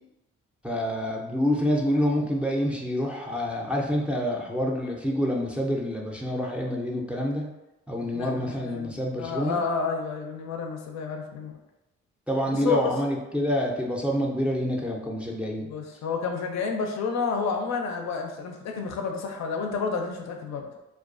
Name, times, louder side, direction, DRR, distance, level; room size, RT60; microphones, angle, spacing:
voice 1, 0.6-7.5 7.9-9.6 12.3-15.7, equal, 5° right, -2 dB, 0.4 m, -27 dB
voice 2, 8.1-11.6 12.5-12.8 15.7-20.7, left 5 dB, 60° left, 2 dB, 0.5 m, -30 dB
2.3 x 2.2 x 2.4 m, 0.95 s
supercardioid pair, 55°, 31 cm